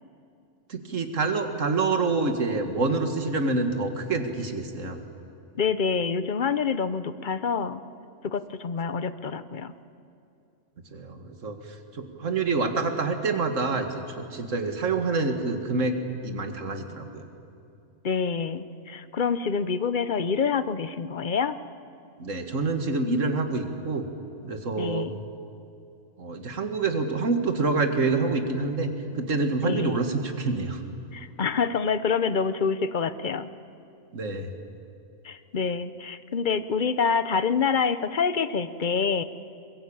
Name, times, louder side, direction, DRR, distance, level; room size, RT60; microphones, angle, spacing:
voice 1, 0.7-5.0 10.9-11.6 11.9-15.9 16.2-17.3 22.2-24.1 24.4-25.1 26.2-30.8 34.1-34.5, right 3 dB, 75° right, 6 dB, 2.2 m, -27 dB
voice 2, 5.5-7.8 8.2-9.7 18.0-21.6 24.8-25.2 29.6-30.0 31.1-33.5 35.2-39.2, left 5 dB, 45° left, 13 dB, 0.8 m, -27 dB
23.0 x 21.5 x 8.8 m, 2.6 s
omnidirectional pair, 1.3 m